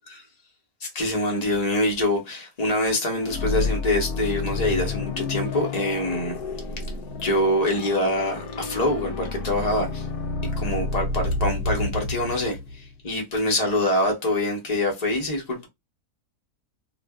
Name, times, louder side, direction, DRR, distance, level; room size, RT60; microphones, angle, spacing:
voice 1, 0.8-6.4 7.2-10.1 10.6-15.7, left 1 dB, 30° left, 0.9 m, -25 dB
sound 1, 3.2-12.9, left 3 dB, 80° left, 1.2 m, -30 dB
2.5 x 2.4 x 2.3 m
omnidirectional pair, 1.6 m